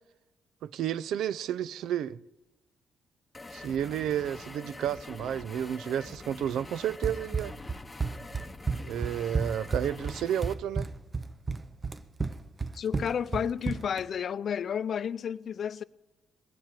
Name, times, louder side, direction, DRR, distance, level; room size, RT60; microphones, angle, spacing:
voice 1, 0.6-2.2 3.5-7.6 8.8-10.9, right 10 dB, 80° right, 0.4 m, -31 dB
sound 1, 3.3-10.5, left 2 dB, 20° left, 0.8 m, -45 dB
Run, 7.0-14.1, right 4 dB, 25° right, 0.7 m, -32 dB
voice 2, 12.7-15.8, left 8 dB, 55° left, 0.5 m, -31 dB
20.0 x 7.4 x 9.0 m
cardioid pair, 90°, 0 cm